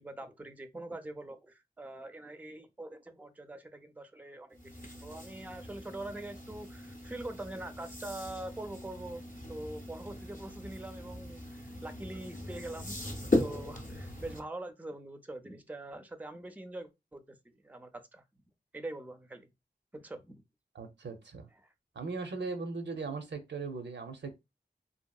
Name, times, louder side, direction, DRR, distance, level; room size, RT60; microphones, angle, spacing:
voice 1, 0.0-9.2 9.5-18.2 18.7-19.5 19.9-20.4 21.5-21.7, right 2 dB, 10° right, 0.4 m, -44 dB
sound 1, 4.5-14.4, left 2 dB, 45° left, 0.6 m, -38 dB
voice 2, 20.7-21.5 22.0-24.3, right 4 dB, 85° right, 0.6 m, -38 dB
2.7 x 2.6 x 2.3 m
wide cardioid pair, 75°, 18 cm